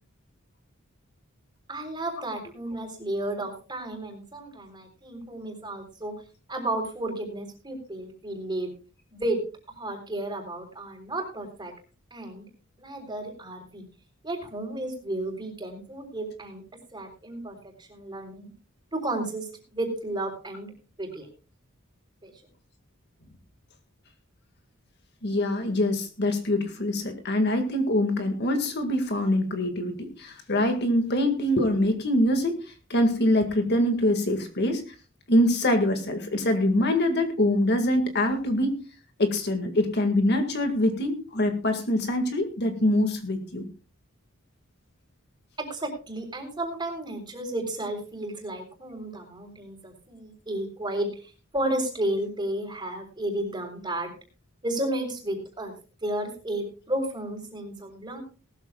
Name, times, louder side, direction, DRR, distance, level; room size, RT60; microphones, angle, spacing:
voice 1, 1.7-6.1 6.5-8.7 9.1-9.4 9.7-11.7 12.1-12.5 12.8-13.9 14.2-16.6 16.9-18.5 18.9-20.7 21.0-21.3 22.2-22.3 45.6-54.1 54.6-55.7 56.0-58.2, right 1 dB, 20° right, 3 dB, 3.8 m, -32 dB
voice 2, 25.2-32.6 32.9-34.8 35.3-38.8 39.2-43.6, left 1 dB, 50° left, 6 dB, 1.9 m, -24 dB
19.0 x 13.5 x 2.3 m, 0.34 s
head